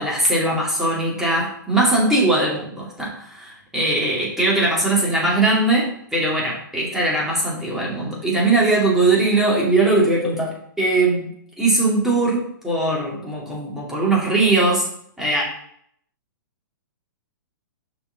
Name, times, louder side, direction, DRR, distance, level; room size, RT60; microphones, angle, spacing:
voice 1, 0.0-11.2 11.6-14.9 15.2-15.5, right 2 dB, 5° right, -5 dB, 2.5 m, -20 dB
6.0 x 5.4 x 3.9 m, 0.67 s
hypercardioid pair, 135°, 11 cm